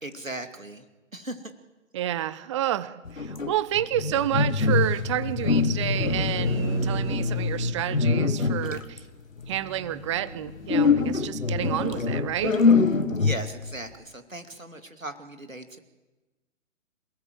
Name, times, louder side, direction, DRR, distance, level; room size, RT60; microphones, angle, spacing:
voice 1, 0.0-0.9 1.1-1.6 13.1-15.8, right 2 dB, 90° right, 7 dB, 2.7 m, -38 dB
voice 2, 1.9-9.0 9.5-12.6, right 12 dB, 25° right, 18 dB, 0.7 m, -29 dB
sound 1, 3.1-5.1 5.4-7.4 7.9-9.0 10.7-13.7, left 4 dB, 85° left, 1.6 m, -24 dB
sound 2, 4.2-11.3, left 2 dB, 60° left, 2.8 m, -32 dB
27.0 x 17.5 x 7.8 m, 1.2 s
figure-of-eight pair, 130°, 39 cm